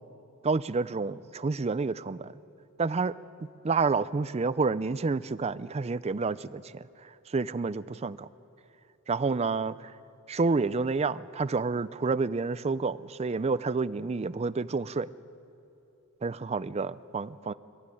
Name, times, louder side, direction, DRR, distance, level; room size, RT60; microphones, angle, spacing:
voice 1, 0.4-2.3 2.8-3.2 3.6-8.3 9.1-10.0 10.3-15.1 16.2-17.5, right 4 dB, 30° right, 16 dB, 0.4 m, -29 dB
23.0 x 14.0 x 9.9 m, 2.9 s
head